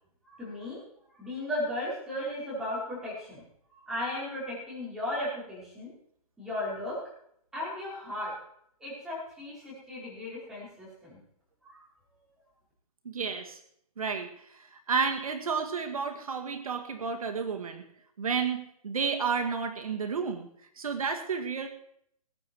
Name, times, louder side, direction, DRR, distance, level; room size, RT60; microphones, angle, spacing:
voice 1, 0.2-0.8 1.2-3.4 3.9-5.9 6.4-7.0 7.5-8.3 8.8-11.2 11.6-11.8, left 1 dB, ahead, -8 dB, 4.7 m, -35 dB
voice 2, 13.1-13.6 14.0-17.8 18.2-20.5 20.8-21.7, right 5 dB, 70° right, 5 dB, 2.0 m, -31 dB
20.5 x 9.6 x 4.6 m, 0.69 s
hypercardioid pair, 175°, 19 cm